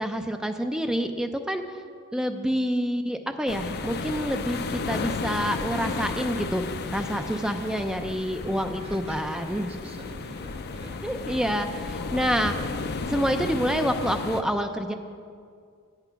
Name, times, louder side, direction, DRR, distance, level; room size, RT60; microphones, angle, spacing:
voice 1, 0.0-1.6 2.1-6.6 6.9-9.7 11.0-12.8 13.1-14.9, equal, 5° right, 6 dB, 0.5 m, -27 dB
sound 1, 3.5-14.4, left 4 dB, 45° left, 0.5 m, -33 dB
voice 2, 8.8-11.1, right 1 dB, 25° right, 3 dB, 0.9 m, -44 dB
8.8 x 8.2 x 5.8 m, 2.2 s
head